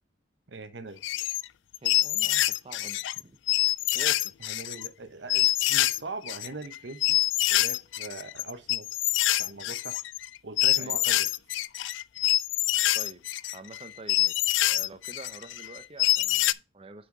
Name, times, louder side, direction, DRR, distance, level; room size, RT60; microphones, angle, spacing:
voice 1, 0.5-1.0 4.4-7.2 7.5-8.9 9.4-10.0 10.4-11.3, right 3 dB, 65° right, 1.0 m, -41 dB
sound 1, 1.0-1.5 1.7-3.2 3.5-4.9 5.3-6.0 6.2-16.5, left 16 dB, 75° left, 0.3 m, -26 dB
voice 2, 1.8-3.4 3.9-4.3 10.8-11.2 12.9-13.2 13.5-14.4 14.7-17.1, right 2 dB, 30° right, 0.7 m, -46 dB
6.0 x 5.8 x 3.9 m
head